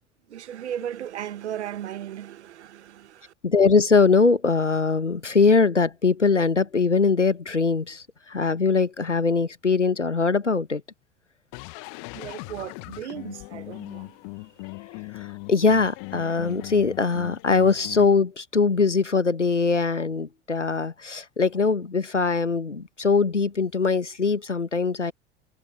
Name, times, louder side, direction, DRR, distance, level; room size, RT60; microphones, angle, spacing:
voice 1, 0.3-3.3 12.0-14.6, right 10 dB, 70° right, 1.8 m, -36 dB
voice 2, 3.4-10.8 15.1-25.1, left 4 dB, 85° left, 1.4 m, -22 dB
sound 1, 11.5-18.1, left 40 dB or more, 50° left, 1.5 m, -39 dB
figure-of-eight pair, 75°, 35 cm